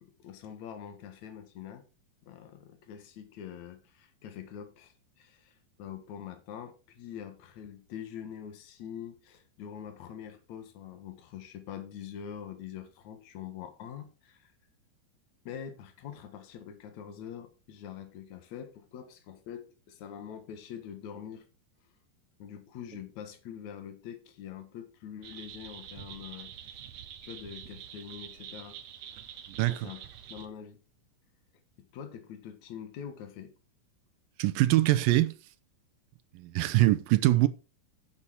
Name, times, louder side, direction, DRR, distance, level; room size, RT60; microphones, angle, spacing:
voice 1, 0.0-1.8 2.2-14.5 15.5-21.5 22.4-26.9 27.2-28.8 29.7-30.0 30.3-30.8 31.8-33.5, left 8 dB, 60° left, 2.6 m, -44 dB
sound 1, 25.2-30.5, right 9 dB, 65° right, 2.0 m, -46 dB
voice 2, 29.6-29.9 34.4-35.3 36.4-37.5, right 16 dB, 85° right, 2.4 m, -23 dB
10.0 x 7.1 x 4.7 m
omnidirectional pair, 4.0 m